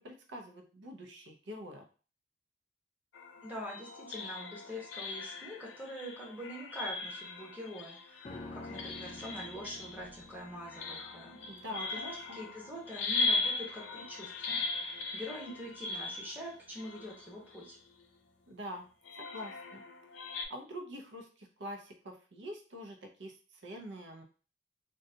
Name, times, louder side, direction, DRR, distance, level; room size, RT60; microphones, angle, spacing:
voice 1, 0.0-1.8 11.5-12.4 18.5-18.8 19.3-19.8 20.5-24.2, equal, 80° right, 3 dB, 0.6 m, -45 dB
sound 1, 3.1-18.0 19.0-20.4, left 3 dB, 90° left, 0.5 m, -39 dB
voice 2, 3.4-17.8, equal, 10° right, -4 dB, 1.0 m, -45 dB
sound 2, 8.2-17.6 17.9-18.0, left 2 dB, 30° left, 0.3 m, -52 dB
3.8 x 2.2 x 2.7 m, 0.37 s
head